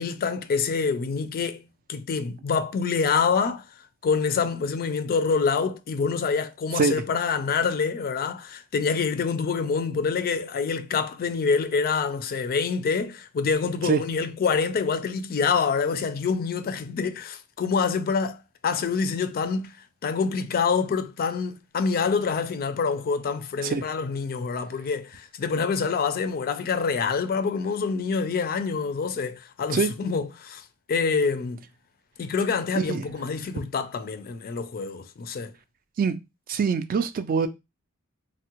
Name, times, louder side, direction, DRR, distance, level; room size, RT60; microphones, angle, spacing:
voice 1, 0.0-3.7 4.0-19.8 20.0-31.6 32.2-35.5, left 5 dB, 45° left, 0.3 m, -26 dB
voice 2, 36.5-37.5, right 5 dB, 40° right, 0.3 m, -24 dB
3.5 x 2.1 x 2.8 m
head